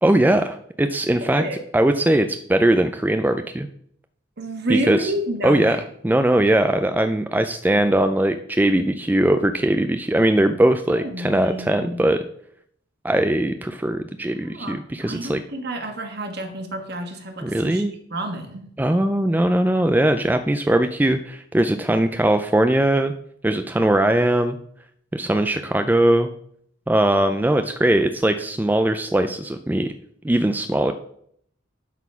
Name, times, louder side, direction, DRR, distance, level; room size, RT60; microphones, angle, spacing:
voice 1, 0.0-1.4 1.7-3.7 4.7-5.1 5.4-5.8 6.0-12.2 13.0-15.4 17.4-17.9 18.8-23.1 23.4-24.6 25.1-26.3 26.9-29.9 30.2-30.9, right 1 dB, 10° right, 8 dB, 0.3 m, -20 dB
voice 2, 1.2-1.6 4.4-5.8 10.9-12.1 14.4-14.8 15.0-17.8 18.1-18.6, right 1 dB, 55° right, 5 dB, 1.5 m, -29 dB
11.5 x 4.1 x 5.6 m, 0.68 s
head